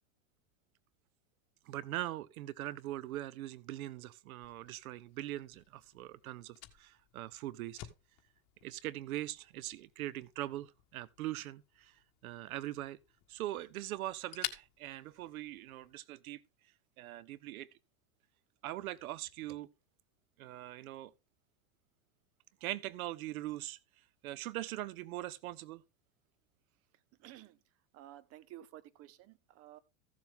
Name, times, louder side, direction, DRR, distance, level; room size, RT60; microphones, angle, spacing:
voice 1, 1.7-7.8 8.6-13.0 13.3-16.4 17.0-17.7 18.6-19.7 20.4-21.1 22.6-23.8 24.2-25.8, right 15 dB, 80° right, 0.7 m, -41 dB
Fire, 4.4-15.9, left 15 dB, 55° left, 1.6 m, -51 dB
voice 2, 27.2-27.6 27.9-29.8, right 13 dB, 35° right, 0.9 m, -53 dB
15.0 x 7.3 x 3.7 m
supercardioid pair, 135°, 42 cm